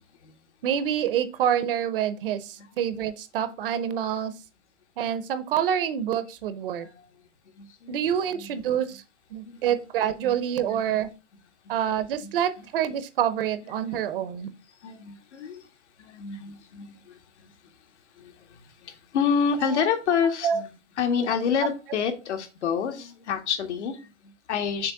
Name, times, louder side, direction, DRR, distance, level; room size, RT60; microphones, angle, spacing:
voice 1, 0.6-4.3 5.0-6.9 7.9-9.0 9.3-11.1 11.7-14.5 19.7-19.8 20.4-20.6, right 9 dB, 50° right, 13 dB, 0.8 m, -27 dB
voice 2, 6.7-7.3 7.6-8.0 8.3-8.9 9.4-9.9 10.2-10.3 10.6-10.8 11.6-11.7 12.2-12.3 13.8-14.0 14.7-15.7 16.0-20.7 21.0-24.9, left 6 dB, 65° left, 6 dB, 1.6 m, -29 dB
6.6 x 3.0 x 5.7 m, 0.30 s
hypercardioid pair, 155°, 36 cm